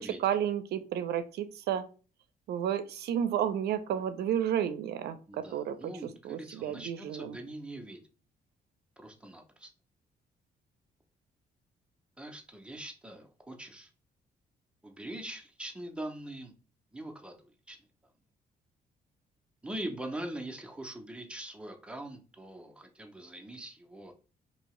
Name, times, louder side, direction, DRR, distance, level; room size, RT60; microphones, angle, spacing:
voice 1, 0.0-1.8 2.5-7.4, right 9 dB, 80° right, 11 dB, 0.5 m, -32 dB
voice 2, 5.3-8.0 9.0-9.7 12.2-13.9 14.8-16.5 16.9-17.8 19.6-24.1, right 1 dB, 5° right, 3 dB, 0.5 m, -42 dB
2.8 x 2.7 x 3.0 m, 0.36 s
cardioid pair, 140°, 17 cm